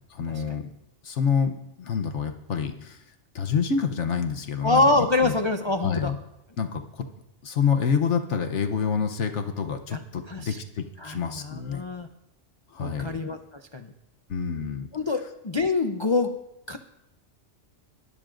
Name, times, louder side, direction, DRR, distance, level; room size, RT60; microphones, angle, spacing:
voice 1, 0.1-0.7 1.0-3.0 3.3-5.3 5.8-6.2 6.6-7.1 7.4-11.8 12.7-13.2 14.3-14.9, left 6 dB, 75° left, 5 dB, 1.2 m, -27 dB
voice 2, 4.6-6.1 9.9-10.0 10.3-10.6 11.0-12.1 12.8-13.9 14.9-16.3 16.7-16.8, left 3 dB, 30° left, 6 dB, 0.5 m, -25 dB
21.0 x 12.0 x 2.6 m, 0.86 s
omnidirectional pair, 1.2 m